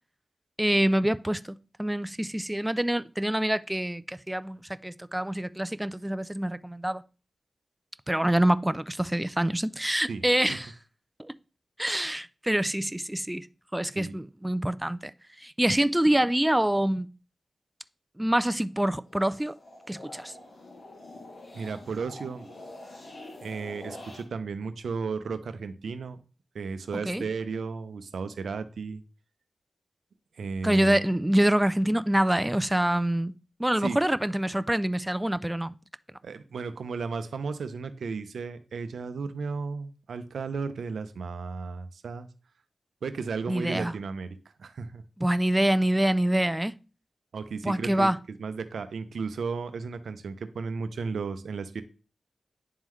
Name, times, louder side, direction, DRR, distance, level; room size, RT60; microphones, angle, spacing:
voice 1, 0.6-7.0 8.1-10.7 11.2-11.3 11.8-13.5 13.7-15.1 15.4-17.1 18.2-19.6 19.9-20.3 26.9-27.2 30.6-33.3 33.6-35.7 43.5-43.9 45.2-46.7 47.6-48.2, right 1 dB, 10° right, 0.3 m, -26 dB
sound 1, 19.0-24.2, left 2 dB, 75° left, 1.7 m, -46 dB
voice 2, 21.5-22.5 23.4-26.2 26.5-29.0 30.4-31.1 33.8-34.0 36.2-42.3 43.0-45.0 47.3-48.1 48.4-51.8, right 5 dB, 85° right, 0.6 m, -34 dB
10.0 x 3.7 x 3.1 m
cardioid pair, 60°, 0 cm